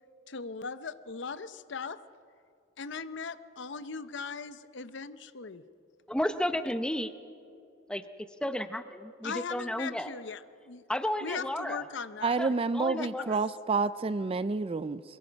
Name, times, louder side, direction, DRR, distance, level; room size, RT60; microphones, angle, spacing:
voice 1, 0.3-2.0 2.8-5.6 9.2-10.8 11.2-12.4 12.9-13.3, left 5 dB, 65° left, 13 dB, 0.7 m, -39 dB
voice 2, 6.1-7.1 7.9-8.0 8.4-10.1 10.9-11.8 12.4-13.4, left 1 dB, 5° left, 10 dB, 0.8 m, -32 dB
voice 3, 12.2-15.0, right 4 dB, 30° right, 15 dB, 0.4 m, -29 dB
23.5 x 21.5 x 5.3 m, 2.5 s
head